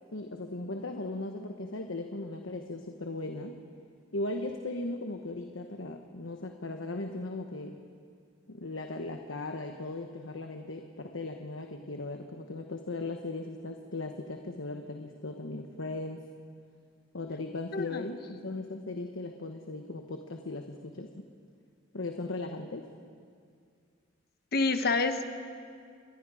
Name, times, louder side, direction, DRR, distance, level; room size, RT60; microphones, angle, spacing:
voice 1, 0.1-3.6 4.1-7.8 8.5-16.2 17.1-21.2 21.9-22.9, left 2 dB, 80° left, 4 dB, 1.2 m, -38 dB
voice 2, 17.7-18.1 24.5-25.2, left 3 dB, 50° left, 8 dB, 1.1 m, -28 dB
27.5 x 21.5 x 5.0 m, 2.2 s
head